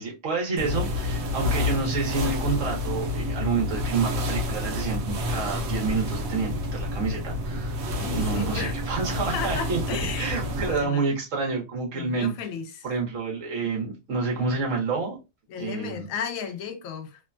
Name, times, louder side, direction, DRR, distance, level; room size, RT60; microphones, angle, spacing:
voice 1, 0.0-7.8 8.1-9.8 10.2-12.3 12.8-15.2 15.6-16.1, right 4 dB, 70° right, 1.3 m, -28 dB
sound 1, 0.6-10.9, left 2 dB, 90° right, 1.1 m, -29 dB
voice 2, 8.0-8.7 9.3-10.4 10.6-11.1 11.9-12.9 15.5-17.2, left 7 dB, 85° left, 1.0 m, -34 dB
3.0 x 2.1 x 2.4 m
omnidirectional pair, 1.4 m